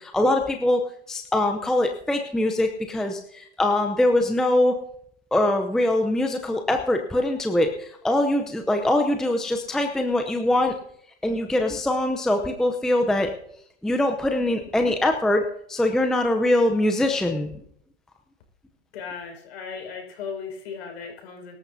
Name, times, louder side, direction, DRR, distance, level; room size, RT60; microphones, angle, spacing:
voice 1, 0.0-4.8 5.3-10.7 11.2-13.3 13.8-15.4 15.7-17.5, left 1 dB, ahead, 4 dB, 0.7 m, -23 dB
voice 2, 18.9-21.6, left 6 dB, 60° left, 3 dB, 5.3 m, -36 dB
23.5 x 13.0 x 2.7 m, 0.69 s
hypercardioid pair, 125°, 35 cm